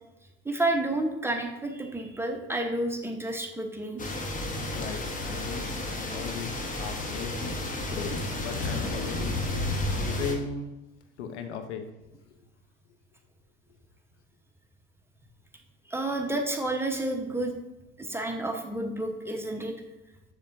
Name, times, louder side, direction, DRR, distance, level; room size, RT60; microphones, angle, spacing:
voice 1, 0.4-4.0 15.9-17.5 18.0-19.7, right 2 dB, 5° right, 2 dB, 1.0 m, -30 dB
sound 1, 4.0-10.3, left 2 dB, 20° left, 1.3 m, -32 dB
voice 2, 4.7-7.4 7.9-8.1 8.4-9.4 10.1-10.7 11.2-11.9, left 5 dB, 70° left, 6 dB, 0.9 m, -37 dB
7.1 x 6.9 x 2.7 m, 1.0 s
figure-of-eight pair, 70°, 36 cm